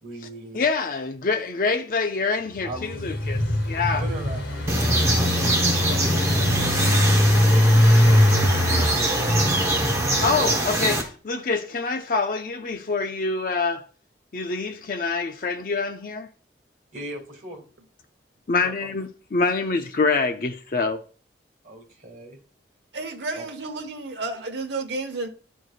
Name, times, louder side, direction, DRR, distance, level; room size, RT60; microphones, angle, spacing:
voice 1, 0.0-0.6 2.6-3.1 3.9-6.5 7.7-9.2 16.9-17.6 18.6-18.7 21.6-22.4 23.3-23.4, right 1 dB, 45° right, 2.3 m, -39 dB
voice 2, 0.5-3.4 3.7-4.0 10.2-13.8 14.3-16.3 18.5-21.0, left 4 dB, 50° left, 0.5 m, -25 dB
Engine, 2.6-10.6, left 1 dB, 85° left, 2.0 m, -21 dB
sound 1, 4.7-11.0, right 1 dB, 15° right, 1.1 m, -23 dB
voice 3, 22.9-25.3, right 3 dB, 80° right, 0.9 m, -31 dB
11.0 x 4.6 x 2.4 m
head